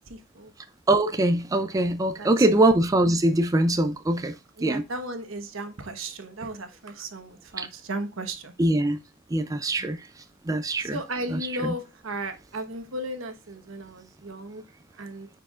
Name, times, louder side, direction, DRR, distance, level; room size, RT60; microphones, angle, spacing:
voice 1, 0.1-0.5 2.2-2.8 4.6-8.5 10.8-14.6 14.9-15.3, right 1 dB, 75° right, 1.1 m, -35 dB
voice 2, 0.9-4.3 4.6-4.8 7.6-7.7 8.6-9.0 9.3-10.0 10.5-11.0, right 1 dB, 15° right, 0.4 m, -22 dB
9.1 x 4.6 x 2.4 m
head